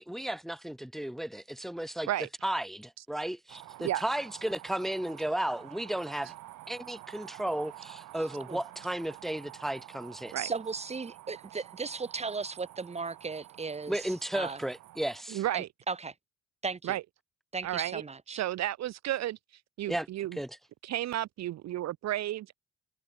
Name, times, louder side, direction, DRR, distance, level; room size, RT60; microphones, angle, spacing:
voice 1, 0.0-2.1 2.4-6.3 6.7-10.4 13.9-15.4 19.9-20.1 20.3-20.6, right 1 dB, ahead, 0.8 m, -34 dB
sound 1, 3.5-15.2, right 15 dB, 85° right, 1.7 m, -49 dB
voice 2, 10.3-14.6 15.5-16.1 16.6-16.9 17.5-18.4, right 4 dB, 20° right, 1.0 m, -36 dB
voice 3, 15.3-15.7 16.8-17.0 17.6-18.0 18.3-19.4 19.8-20.4 20.8-22.6, right 13 dB, 60° right, 0.6 m, -32 dB
cardioid pair, 90°, 30 cm